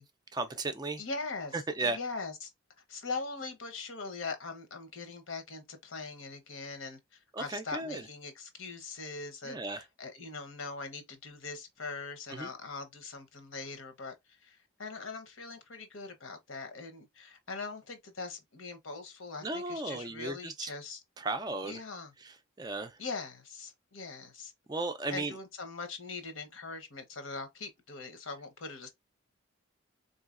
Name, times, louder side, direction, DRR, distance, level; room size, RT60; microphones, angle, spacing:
voice 1, 0.3-1.0 1.5-2.0 7.3-8.1 9.4-9.8 12.3-12.5 19.4-20.7 21.2-21.8 22.2-23.0 24.7-25.3, right 2 dB, 20° right, 0.3 m, -35 dB
voice 2, 1.0-1.5 1.8-2.5 2.9-7.0 7.4-14.1 14.4-21.0 21.6-22.1 23.0-24.5 25.1-28.9, left 4 dB, 75° left, 0.9 m, -41 dB
3.9 x 2.7 x 2.4 m
head